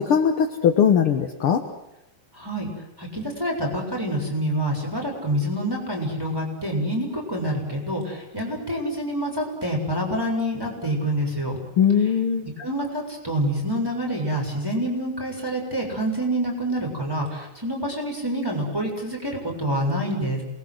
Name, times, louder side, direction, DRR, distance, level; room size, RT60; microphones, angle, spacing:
voice 1, 0.0-1.6 11.8-12.5, left 7 dB, 55° left, 5 dB, 1.5 m, -20 dB
voice 2, 2.4-2.7 3.0-11.6 12.6-20.4, equal, 5° right, 0 dB, 6.8 m, -27 dB
28.5 x 21.0 x 8.0 m, 0.91 s
omnidirectional pair, 4.2 m